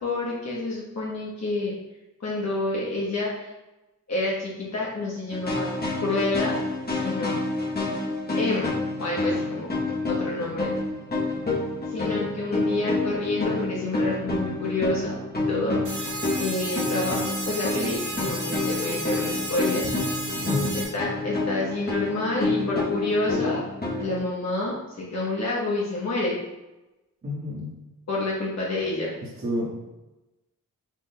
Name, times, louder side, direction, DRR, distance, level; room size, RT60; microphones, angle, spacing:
voice 1, 0.0-1.7 2.2-3.5 4.1-5.7 6.0-6.5 6.9-7.4 8.4-8.7 9.0-9.7 10.1-10.7 11.9-15.1 15.5-16.0 16.4-17.2 17.4-19.9 20.7-23.6 24.0-26.4 28.1-29.1, left 2 dB, 50° left, -5 dB, 1.0 m, -28 dB
sound 1, 5.3-24.2, left 2 dB, 30° left, 0.9 m, -28 dB
sound 2, 15.8-20.8, right 2 dB, 65° right, 1.5 m, -33 dB
voice 2, 20.3-20.8 27.2-27.7 29.2-29.8, left 1 dB, 40° right, -7 dB, 1.4 m, -30 dB
6.1 x 4.0 x 2.2 m, 1.0 s
wide cardioid pair, 115°, 34 cm